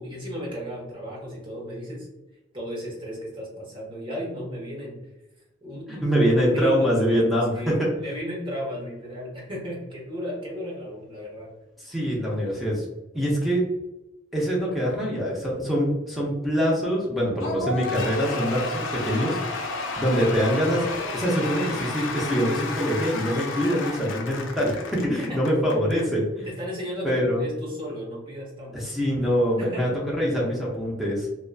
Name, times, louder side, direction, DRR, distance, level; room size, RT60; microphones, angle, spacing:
voice 1, 0.0-2.1 2.5-5.0 5.6-6.2 6.5-7.2 7.5-11.5 25.2-25.4 26.4-28.7 29.6-29.8, equal, 25° right, -4 dB, 0.9 m, -34 dB
voice 2, 5.9-7.9 11.8-12.9 13.1-13.6 14.3-19.4 20.0-26.5 27.0-27.5 28.7-31.3, equal, ahead, -5 dB, 0.5 m, -24 dB
Cheering / Applause / Crowd, 17.4-26.0, left 3 dB, 70° left, 0.4 m, -32 dB
2.5 x 2.2 x 2.2 m, 0.99 s
head